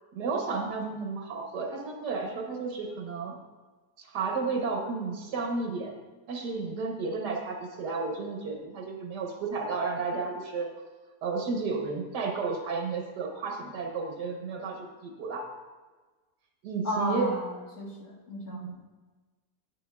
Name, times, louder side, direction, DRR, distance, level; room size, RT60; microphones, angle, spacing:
voice 1, 0.1-3.3 4.0-5.9 6.3-10.7 11.2-15.5 16.6-17.3 18.5-18.8, right 4 dB, 80° right, 1 dB, 1.6 m, -32 dB
voice 2, 16.8-18.6, equal, 65° left, -6 dB, 2.3 m, -33 dB
9.8 x 8.7 x 2.3 m, 1.3 s
omnidirectional pair, 1.8 m